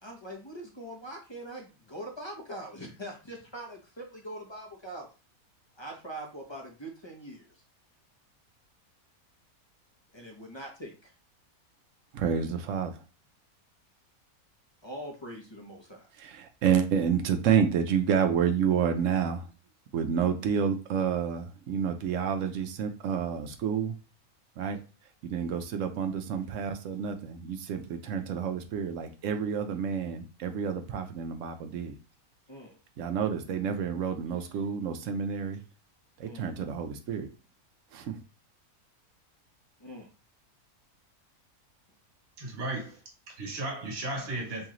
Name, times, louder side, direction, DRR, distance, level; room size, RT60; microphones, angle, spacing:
voice 1, 0.0-5.1 5.8-7.6 10.1-11.1 14.8-16.1 32.5-32.8 36.2-36.5 39.8-40.1, right 1 dB, 30° left, 0.5 m, -42 dB
voice 2, 12.1-12.9 16.2-19.5 19.9-24.0 24.6-24.8 25.2-31.9 33.0-35.6 36.2-37.3 37.9-38.2, right 7 dB, 65° right, 0.9 m, -29 dB
voice 3, 42.4-43.0 43.3-44.7, right 2 dB, 45° right, 1.4 m, -35 dB
3.1 x 3.0 x 3.7 m
omnidirectional pair, 1.6 m